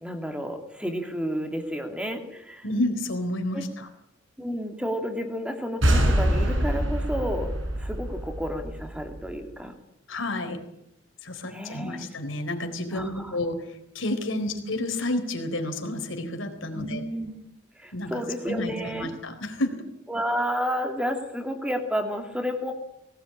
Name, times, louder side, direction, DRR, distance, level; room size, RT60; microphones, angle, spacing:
voice 1, 0.0-2.6 3.5-3.6 4.4-7.5 7.8-9.7 11.5-12.1 12.9-13.4 14.4-14.6 16.7-17.4 17.8-19.1 20.1-22.7, equal, 5° right, 4 dB, 2.6 m, -31 dB
voice 2, 2.6-3.9 10.1-10.6 11.2-13.1 13.3-17.0 17.9-19.8, left 1 dB, 75° left, 6 dB, 4.1 m, -30 dB
sound 1, 5.8-9.3, right 1 dB, 70° right, 5.8 m, -25 dB
20.5 x 18.0 x 8.7 m, 0.80 s
head